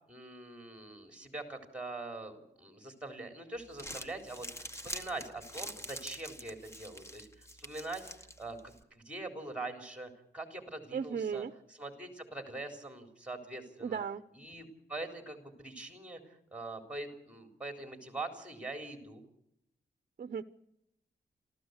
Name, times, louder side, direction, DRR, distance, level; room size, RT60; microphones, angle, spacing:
voice 1, 0.1-8.1 8.4-14.0 14.3-19.2, right 2 dB, 5° right, 6 dB, 3.8 m, -43 dB
Crumpling crinkling, 3.6-8.8, equal, 15° left, 1.6 m, -46 dB
voice 2, 10.9-11.5 13.8-14.2 20.2-20.4, right 6 dB, 50° right, 11 dB, 0.7 m, -35 dB
27.5 x 14.5 x 8.1 m, 0.80 s
wide cardioid pair, 155°, 18 cm